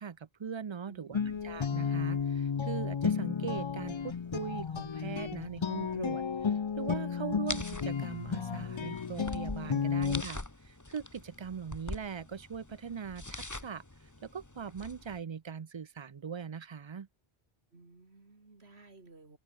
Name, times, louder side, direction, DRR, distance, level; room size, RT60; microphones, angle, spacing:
voice 1, 0.0-13.8 14.2-17.1, right 6 dB, 40° right, 0.4 m, -41 dB
voice 2, 0.9-1.5 17.7-19.4, right 3 dB, 80° right, 3.2 m, -56 dB
Guitar, 1.1-10.2, left 6 dB, 40° left, 0.5 m, -33 dB
sound 1, 7.5-15.2, left 2 dB, 15° left, 1.4 m, -44 dB
omnidirectional pair, 1.1 m